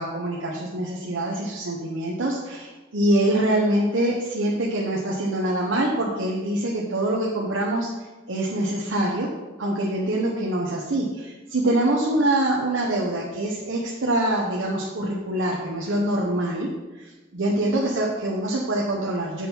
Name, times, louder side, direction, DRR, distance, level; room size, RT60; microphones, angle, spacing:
voice 1, 0.0-7.9 8.3-9.3 9.6-19.5, right 1 dB, 75° right, -2 dB, 0.9 m, -25 dB
7.5 x 4.5 x 5.4 m, 1.2 s
head